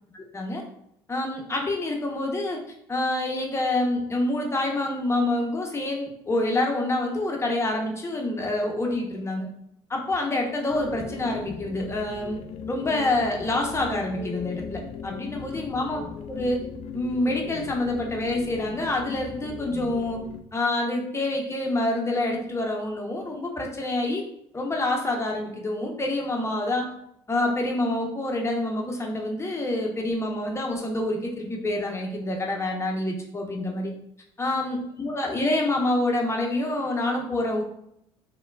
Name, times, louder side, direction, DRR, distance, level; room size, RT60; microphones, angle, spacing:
voice 1, 0.1-0.6 1.1-2.6 2.9-9.5 9.9-12.4 12.7-16.0 16.3-16.6 16.9-20.2 20.5-24.2 24.5-26.9 27.3-33.9 34.4-37.6, left 2 dB, 20° left, 0 dB, 0.7 m, -27 dB
sound 1, 10.7-20.4, left 6 dB, 50° left, 0.4 m, -38 dB
3.1 x 2.1 x 2.2 m, 0.76 s
hypercardioid pair, 65°, 14 cm